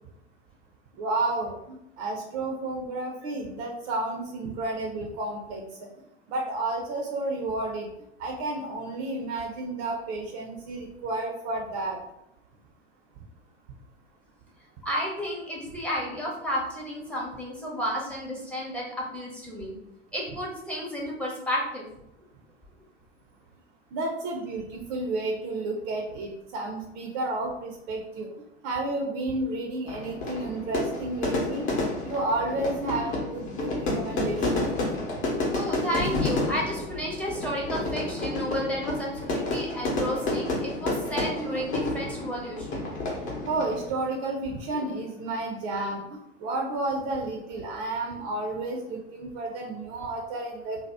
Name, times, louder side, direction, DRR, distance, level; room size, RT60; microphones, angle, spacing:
voice 1, 1.0-5.6 6.3-7.9 8.2-12.0 23.9-28.3 28.6-31.6 32.0-34.7 43.5-46.0 46.4-50.8, right 2 dB, 40° right, 1 dB, 0.5 m, -31 dB
voice 2, 14.8-18.9 19.1-19.8 20.1-21.8 35.5-42.8 44.7-44.8, equal, 5° left, -3 dB, 0.7 m, -32 dB
Fire / Fireworks, 29.9-43.9, left 2 dB, 35° left, 0.9 m, -30 dB
2.7 x 2.0 x 3.3 m, 0.83 s
figure-of-eight pair, 85°, 33 cm